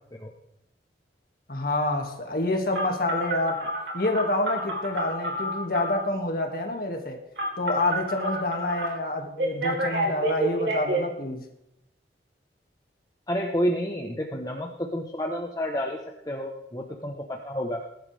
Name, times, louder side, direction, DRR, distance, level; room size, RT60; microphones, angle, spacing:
voice 1, 1.5-3.7 3.9-7.2 7.6-11.5, left 1 dB, 55° left, 3 dB, 2.3 m, -27 dB
Telephone, 2.7-6.1 7.4-8.9 9.4-11.0, right 1 dB, 75° right, 3.9 m, -29 dB
voice 2, 13.3-16.0 16.2-17.8, equal, 20° left, 1 dB, 1.2 m, -30 dB
20.5 x 11.5 x 3.5 m, 0.85 s
head